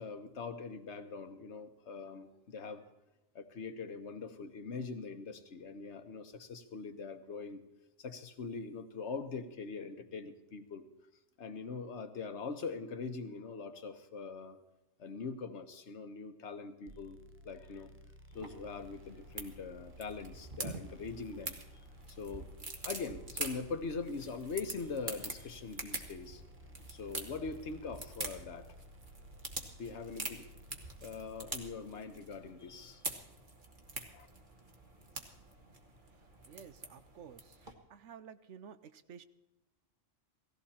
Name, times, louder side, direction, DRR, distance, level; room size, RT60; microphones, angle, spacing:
voice 1, 0.0-2.8 3.3-7.6 8.0-10.8 11.4-14.6 15.0-17.2 17.4-17.9 18.3-21.6 22.1-26.4 26.9-28.7 29.8-30.4 31.0-33.0 34.1-34.3, left 4 dB, 65° left, 8 dB, 1.4 m, -42 dB
sound 1, 16.9-31.6, equal, 20° right, 0.4 m, -56 dB
sound 2, 18.3-37.7, right 2 dB, 40° right, 1.8 m, -45 dB
voice 2, 36.5-37.4 37.9-38.8 39.1-39.2, right 7 dB, 70° right, 13 dB, 1.1 m, -51 dB
18.0 x 15.0 x 4.3 m, 0.98 s
omnidirectional pair, 1.3 m